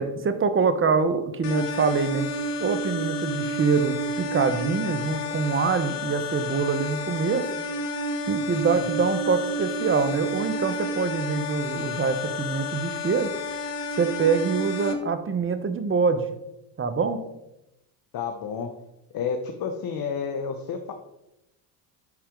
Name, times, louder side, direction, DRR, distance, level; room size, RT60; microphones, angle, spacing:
voice 1, 0.0-2.3 2.6-7.5 8.3-13.3 14.0-16.2 16.8-17.2, right 5 dB, 25° right, 10 dB, 0.9 m, -25 dB
sound 1, 1.4-14.9, left 1 dB, 65° left, 1.2 m, -30 dB
voice 2, 18.1-18.7 19.1-20.9, left 6 dB, 50° left, 5 dB, 0.9 m, -30 dB
11.0 x 4.2 x 3.8 m, 0.89 s
supercardioid pair, 80°, 46 cm